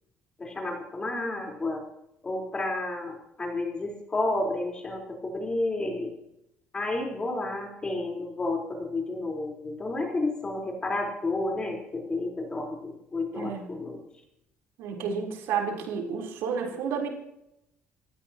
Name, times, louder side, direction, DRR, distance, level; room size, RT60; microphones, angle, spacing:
voice 1, 0.4-1.8 2.2-6.1 6.7-14.0, left 2 dB, 25° left, 1 dB, 4.4 m, -31 dB
voice 2, 13.4-13.7 14.8-17.1, right 6 dB, 85° right, 0 dB, 4.0 m, -31 dB
28.5 x 15.0 x 3.0 m, 0.82 s
cardioid pair, 125°, 4 cm